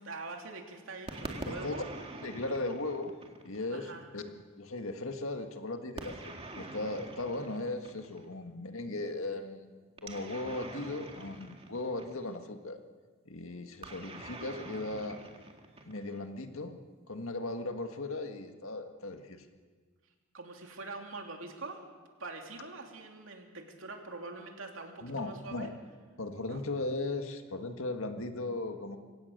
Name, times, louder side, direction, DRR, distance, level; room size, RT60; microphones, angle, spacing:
voice 1, 0.0-1.8 3.7-4.1 20.3-21.9 22.2-25.7 26.5-26.6, right 3 dB, 70° right, 2 dB, 3.0 m, -44 dB
sound 1, 1.1-3.7 6.0-8.3 10.0-12.4 13.8-16.3, right 2 dB, 30° right, 2.2 m, -45 dB
voice 2, 1.5-1.9 2.2-3.1 3.4-12.8 13.3-15.2 15.8-16.8 17.1-19.5 25.0-25.7 26.2-29.0, left 2 dB, 85° left, 6 dB, 1.8 m, -37 dB
24.5 x 17.5 x 6.7 m, 1.4 s
head